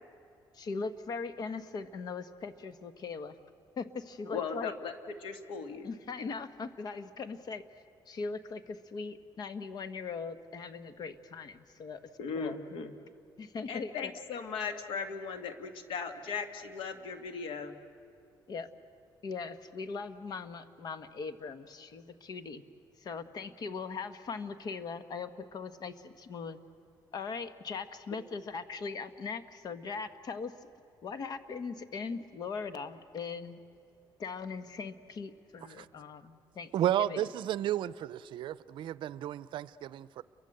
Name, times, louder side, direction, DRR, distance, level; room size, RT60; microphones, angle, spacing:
voice 1, 0.5-3.4 3.8-4.7 5.8-7.6 8.1-12.6 13.4-14.1 18.5-18.7 19.2-22.6 23.0-26.6 27.1-30.5 31.0-33.6 34.2-37.2, left 4 dB, 50° left, 11 dB, 1.4 m, -40 dB
voice 2, 4.3-4.9 5.2-5.9 12.2-12.9 13.7-17.8, left 5 dB, 80° left, 7 dB, 2.0 m, -38 dB
voice 3, 36.7-40.2, right 12 dB, 70° right, 17 dB, 0.6 m, -32 dB
29.5 x 23.5 x 8.0 m, 2.5 s
cardioid pair, 120°, 9 cm